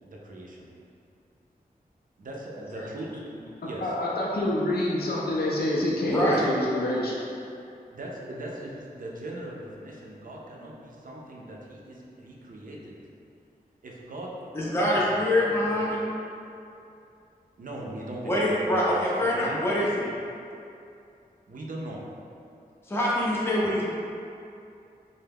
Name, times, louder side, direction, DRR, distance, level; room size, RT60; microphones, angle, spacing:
voice 1, 0.0-0.7 2.2-3.9 7.9-13.0 13.8-16.0 17.6-19.9 21.5-22.0, right 1 dB, 55° right, -3 dB, 0.5 m, -40 dB
voice 2, 3.8-7.1, left 1 dB, 75° left, -5 dB, 0.4 m, -27 dB
voice 3, 6.1-6.4 14.5-16.0 18.2-20.1 22.9-23.8, left 1 dB, 15° left, -6 dB, 0.5 m, -25 dB
2.2 x 2.1 x 3.3 m, 2.6 s
cardioid pair, 55°, 16 cm